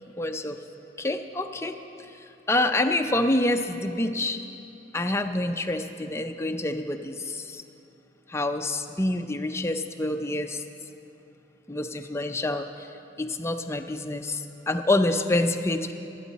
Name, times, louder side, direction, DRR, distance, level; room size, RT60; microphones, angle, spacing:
voice 1, 0.2-0.6 1.0-1.8 2.5-4.4 4.9-7.6 8.3-10.6 11.7-12.9 13.2-15.9, left 1 dB, 15° left, 6 dB, 0.5 m, -27 dB
23.5 x 9.1 x 4.1 m, 2.8 s
head